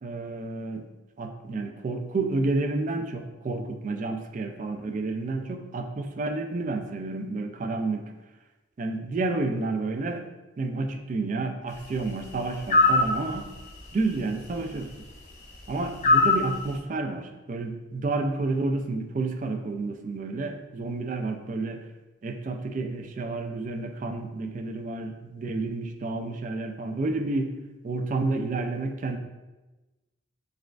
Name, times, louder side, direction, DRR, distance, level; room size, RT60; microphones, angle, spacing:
voice 1, 0.0-0.9 1.2-8.1 8.8-10.2 10.6-13.5 13.9-14.9 15.7-21.8 22.2-27.5 27.8-29.2, right 3 dB, 40° right, 6 dB, 0.3 m, -30 dB
sound 1, 12.7-13.1 16.0-16.4, left 3 dB, 35° left, 0.5 m, -19 dB
6.4 x 2.3 x 2.4 m, 1.1 s
head